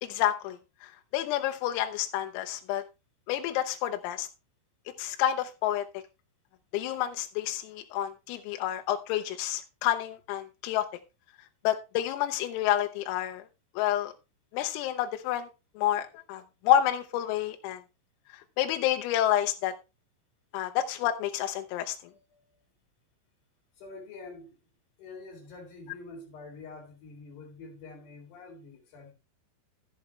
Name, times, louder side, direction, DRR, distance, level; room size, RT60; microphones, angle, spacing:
voice 1, 0.0-2.8 3.3-4.3 5.0-5.9 6.7-10.9 11.6-13.4 13.8-14.1 14.5-15.5 15.8-17.8 18.3-19.7 20.5-22.0, left 11 dB, 85° left, 3.5 m, -29 dB
voice 2, 22.1-22.4 23.8-24.6 25.0-29.1, left 3 dB, 55° left, 4.8 m, -46 dB
14.5 x 7.1 x 3.2 m
omnidirectional pair, 5.9 m